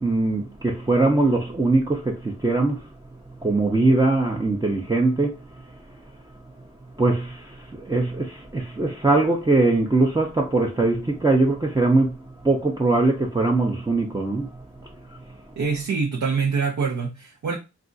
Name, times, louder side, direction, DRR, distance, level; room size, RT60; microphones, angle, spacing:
voice 1, 0.0-2.8 3.4-5.7 7.0-14.6 15.1-15.2, right 2 dB, 15° right, 0.5 m, -21 dB
voice 2, 15.6-17.6, right 5 dB, 70° right, 0.6 m, -25 dB
2.4 x 2.3 x 3.8 m
wide cardioid pair, 70°, 30 cm